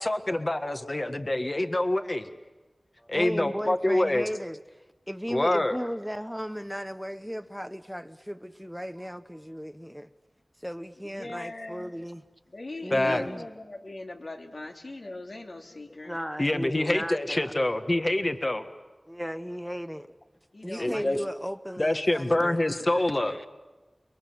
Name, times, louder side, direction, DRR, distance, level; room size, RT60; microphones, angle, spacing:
voice 1, 0.0-2.3 3.1-4.3 5.3-5.8 12.9-13.2 16.4-18.6 20.8-21.2 21.8-23.3, left 1 dB, 40° left, 1.6 m, -26 dB
voice 2, 3.0-10.1 10.6-12.2 12.8-13.5 16.0-17.5 19.1-20.1 20.6-23.5, equal, ahead, 0.8 m, -36 dB
voice 3, 11.1-11.9 12.5-16.2 20.5-21.3, left 2 dB, 70° left, 2.6 m, -40 dB
30.0 x 22.0 x 7.8 m
wide cardioid pair, 55°, 0 cm